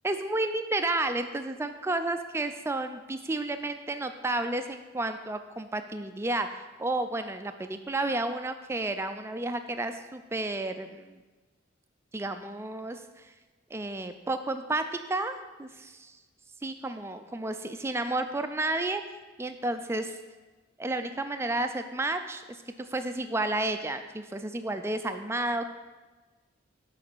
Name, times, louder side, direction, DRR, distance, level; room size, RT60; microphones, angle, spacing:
voice 1, 0.0-11.2 12.1-13.3 13.7-14.8 15.1-16.2 16.6-19.0 19.4-20.2 20.8-25.7, right 2 dB, 15° right, 8 dB, 0.3 m, -31 dB
7.4 x 4.0 x 6.1 m, 1.3 s
head